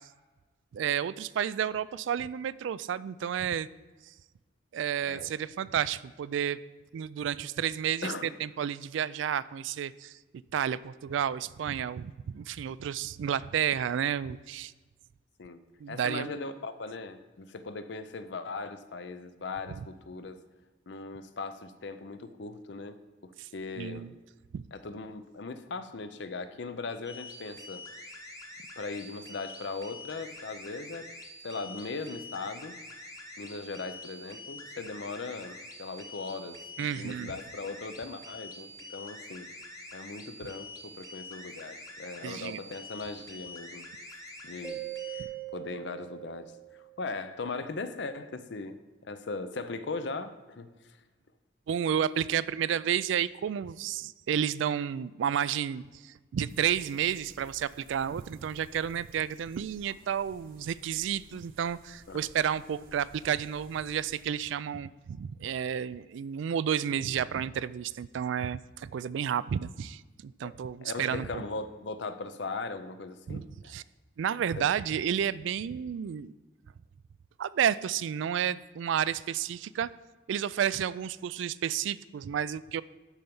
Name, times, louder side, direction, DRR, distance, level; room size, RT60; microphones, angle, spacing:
voice 1, 0.7-3.7 4.7-6.6 6.9-8.1 8.4-10.2 10.5-14.7 15.8-16.3 23.4-23.5 23.8-24.1 24.5-24.6 36.8-37.3 42.2-42.6 51.7-71.4 73.3-73.8 74.2-76.3 77.4-79.9 80.3-82.8, right 8 dB, 75° right, 18 dB, 0.3 m, -31 dB
voice 2, 15.9-20.4 20.9-24.1 24.7-27.8 28.8-31.1 31.4-32.8 33.4-39.5 39.9-43.9 44.1-44.8 45.1-45.3 45.5-48.8 49.0-51.0 62.1-62.2 70.4-70.5 70.8-73.7 74.6-74.7, left 3 dB, 65° left, 11 dB, 0.6 m, -39 dB
sound 1, 27.0-45.2, left 1 dB, 20° left, 1.0 m, -46 dB
Mallet percussion, 44.6-47.2, right 13 dB, 5° right, 0.6 m, -41 dB
sound 2, 56.5-64.3, right 1 dB, 45° right, 0.9 m, -56 dB
12.0 x 4.5 x 5.4 m, 1.3 s
head